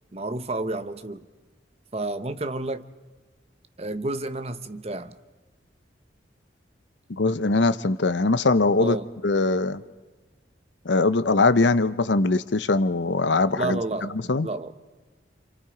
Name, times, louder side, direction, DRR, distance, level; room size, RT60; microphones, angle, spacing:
voice 1, 0.1-1.2 1.9-2.9 3.8-5.2 8.8-9.1 13.5-14.7, right 2 dB, 35° right, 11 dB, 0.9 m, -30 dB
voice 2, 7.2-9.0 9.2-9.8 10.8-13.8 14.3-14.5, left 3 dB, 75° left, 14 dB, 0.8 m, -21 dB
29.0 x 27.5 x 5.0 m, 1.3 s
head